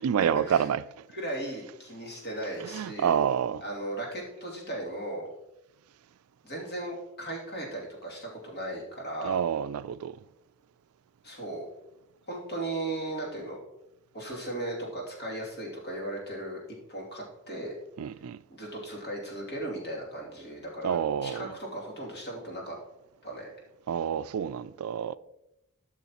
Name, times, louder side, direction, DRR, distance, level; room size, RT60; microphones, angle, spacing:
voice 1, 0.0-1.1 2.6-3.6 9.2-10.2 18.0-18.4 20.8-21.5 23.9-25.2, right 8 dB, 70° right, 0.3 m, -28 dB
voice 2, 1.1-3.1 3.6-5.3 6.4-9.4 11.2-11.7 12.3-13.6 14.1-16.6 16.9-17.8 18.5-22.7 23.2-23.5, right 1 dB, 50° left, 2.6 m, -36 dB
13.0 x 6.3 x 2.9 m
head